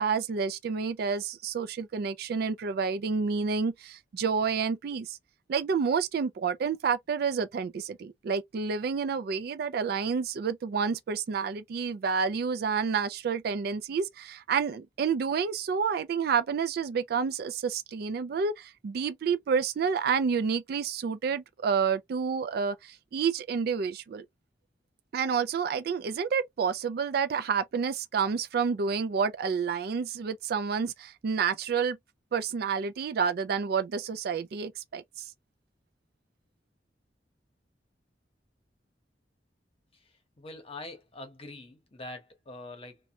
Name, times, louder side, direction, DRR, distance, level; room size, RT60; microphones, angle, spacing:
voice 1, 0.0-5.2 5.5-24.2 25.1-32.0 32.3-35.0, right 6 dB, 60° right, 0.3 m, -29 dB
voice 2, 40.4-43.0, left 2 dB, 35° left, 0.9 m, -44 dB
2.7 x 2.2 x 2.7 m
head